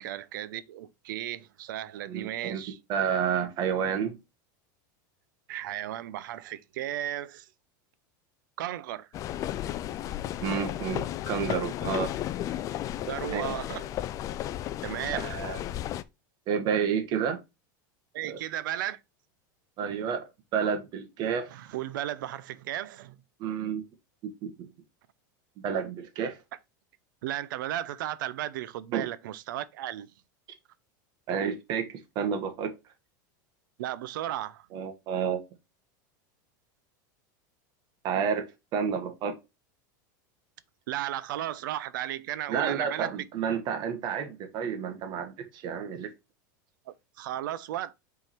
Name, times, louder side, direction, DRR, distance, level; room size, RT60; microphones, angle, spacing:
voice 1, 0.0-2.8 5.5-7.5 8.6-9.1 11.8-11.9 13.0-13.9 14.8-15.3 18.1-19.0 21.5-23.2 27.2-30.1 33.8-34.7 40.9-43.2 46.9-47.9, right 12 dB, 80° right, 0.6 m, -35 dB
voice 2, 2.1-2.6 2.9-4.2 10.4-12.1 13.3-13.5 15.1-15.6 16.5-17.4 18.3-18.4 19.8-20.3 20.5-21.6 23.4-23.8 24.2-24.7 25.6-26.4 28.9-29.1 31.3-32.7 34.7-35.4 38.0-39.4 42.5-46.1, right 7 dB, 40° right, 1.4 m, -30 dB
sound 1, 9.1-16.0, left 12 dB, 30° left, 0.4 m, -34 dB
5.9 x 3.8 x 4.3 m
supercardioid pair, 145°, 11 cm